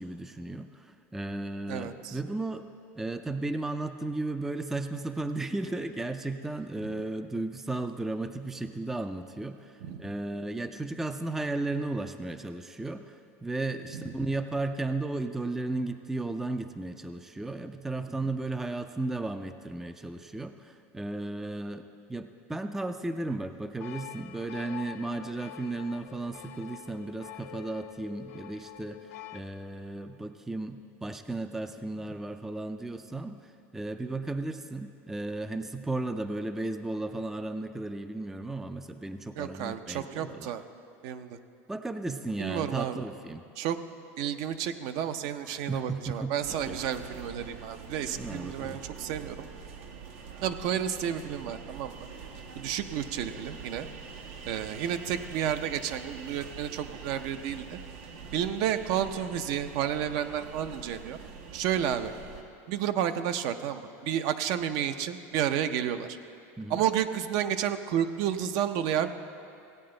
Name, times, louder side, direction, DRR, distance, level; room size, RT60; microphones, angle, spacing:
voice 1, 0.0-2.6 3.0-40.5 41.7-43.5 45.4-46.8 48.2-48.8 66.6-66.8, right 2 dB, 5° right, 9 dB, 0.3 m, -35 dB
voice 2, 1.7-2.2 6.8-6.9 9.8-10.1 13.9-14.1 39.4-40.6 41.0-41.4 42.4-43.0 43.6-43.8 44.2-49.4 50.4-51.9 52.6-53.9 54.4-57.8 58.3-61.2 61.5-62.1 62.7-66.2 66.7-69.1, right 9 dB, 60° right, 10 dB, 0.6 m, -31 dB
sound 1, 23.8-29.4, left 12 dB, 80° left, 0.6 m, -46 dB
sound 2, 46.4-62.4, right 5 dB, 80° right, 1.0 m, -44 dB
16.0 x 8.6 x 3.8 m, 2.5 s
supercardioid pair, 135°, 7 cm